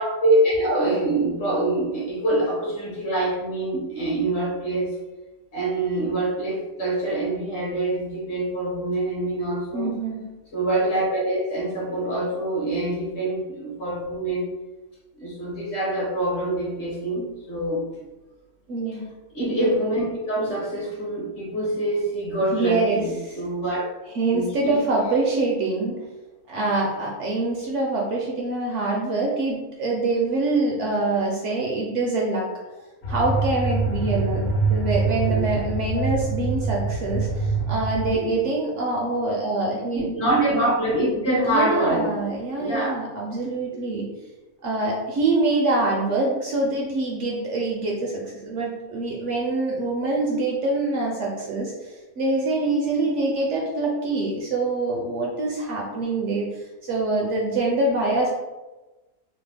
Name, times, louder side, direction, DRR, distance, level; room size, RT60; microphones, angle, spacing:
voice 1, 0.0-4.9 5.5-9.9 10.5-14.5 15.2-18.0 19.3-23.8 24.3-24.8 35.3-35.4 38.2-38.4 39.9-42.2 42.6-42.9, right 1 dB, 50° left, -4 dB, 1.0 m, -25 dB
voice 2, 9.7-10.2 18.7-19.0 22.5-23.4 24.1-26.0 26.5-32.5 33.1-40.1 41.4-44.1 44.6-58.3, right 2 dB, 65° right, -2 dB, 0.8 m, -25 dB
sound 1, 33.0-38.2, right 3 dB, 80° left, 1.1 m, -25 dB
2.8 x 2.0 x 3.3 m, 1.1 s
omnidirectional pair, 1.5 m